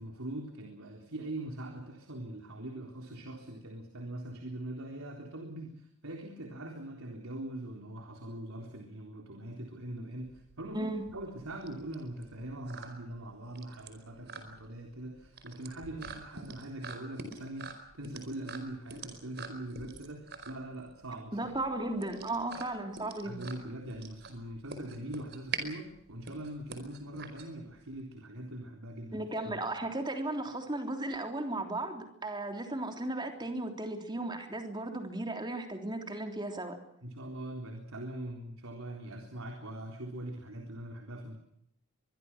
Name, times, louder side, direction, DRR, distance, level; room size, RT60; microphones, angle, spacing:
voice 1, 0.0-21.4 23.2-29.6 37.0-41.4, right 1 dB, 80° right, 2 dB, 3.9 m, -42 dB
sound 1, 10.2-28.0, right 5 dB, 50° right, 4.8 m, -45 dB
voice 2, 21.3-23.4 29.1-36.8, right 2 dB, 20° right, 4 dB, 3.5 m, -35 dB
24.5 x 22.5 x 6.1 m, 0.75 s
head